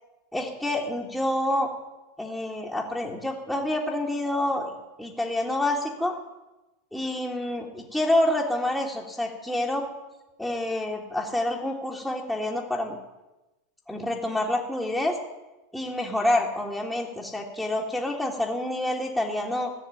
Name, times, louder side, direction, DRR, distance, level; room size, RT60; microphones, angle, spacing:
voice 1, 0.3-1.7 2.2-6.1 6.9-9.9 10.4-13.0 13.9-15.2 15.7-19.7, left 1 dB, ahead, -4 dB, 1.8 m, -27 dB
14.5 x 6.5 x 9.2 m, 1.0 s
supercardioid pair, 125°, 0 cm